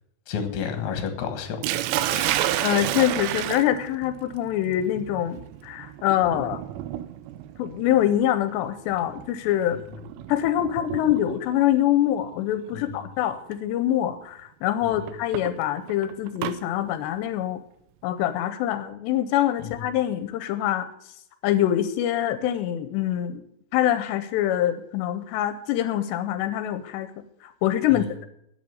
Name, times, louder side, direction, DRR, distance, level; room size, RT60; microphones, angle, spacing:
voice 1, 0.3-1.8 2.1-2.6 9.9-10.0 12.7-13.1 14.8-15.1 19.6-19.9 27.9-28.1, left 7 dB, 55° left, 6 dB, 2.4 m, -32 dB
Sink (filling or washing), 1.6-11.6 12.7-13.0 13.5-13.6 15.1-16.6, right 13 dB, 85° right, 2.8 m, -31 dB
voice 2, 2.6-6.6 7.6-9.8 10.3-17.6 18.0-20.9 21.4-23.4 23.7-27.1 27.4-28.3, left 12 dB, 85° left, 11 dB, 2.8 m, -24 dB
10.5 x 8.6 x 7.9 m, 0.74 s
omnidirectional pair, 5.1 m